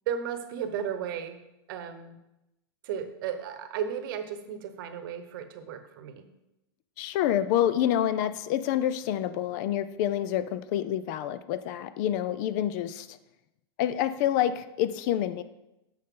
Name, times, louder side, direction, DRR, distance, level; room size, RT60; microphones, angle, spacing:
voice 1, 0.1-1.4 1.7-2.2 2.8-6.2, right 8 dB, 55° right, 9 dB, 1.0 m, -34 dB
voice 2, 7.0-13.2 13.8-15.4, left 11 dB, 45° left, 14 dB, 0.5 m, -27 dB
9.7 x 6.5 x 3.8 m, 0.92 s
hypercardioid pair, 135°, 13 cm